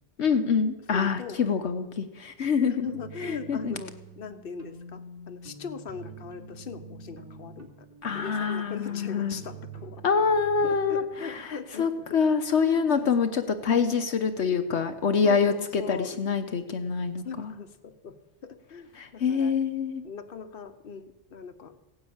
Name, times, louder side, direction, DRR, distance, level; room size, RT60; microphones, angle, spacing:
voice 1, 0.2-2.9 3.2-3.7 8.0-9.4 10.0-17.5 19.0-20.0, left 5 dB, 70° left, 7 dB, 1.2 m, -26 dB
voice 2, 0.9-1.4 2.7-7.7 8.1-10.2 10.6-12.2 12.6-13.3 15.2-16.2 17.2-18.2 18.4-19.5 20.0-21.7, left 5 dB, 50° left, 8 dB, 1.2 m, -40 dB
sound 1, 2.9-11.0, right 2 dB, 15° right, 2.5 m, -46 dB
16.5 x 9.8 x 8.7 m, 0.98 s
omnidirectional pair, 1.2 m